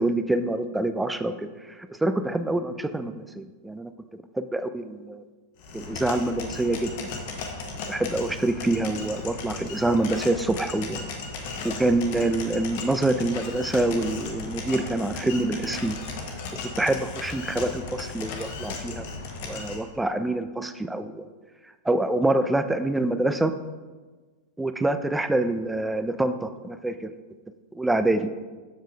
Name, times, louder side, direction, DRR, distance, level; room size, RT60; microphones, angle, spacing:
voice 1, 0.0-1.5 1.8-3.9 4.3-5.2 5.7-6.9 7.9-11.1 11.6-16.0 16.8-19.0 19.5-21.3 21.8-23.5 24.6-27.1 27.7-28.3, right 2 dB, 5° right, 10 dB, 0.4 m, -26 dB
sound 1, 5.6-19.8, left 4 dB, 50° left, 1.0 m, -36 dB
7.3 x 7.2 x 3.5 m, 1.3 s
figure-of-eight pair, 90°, 0 cm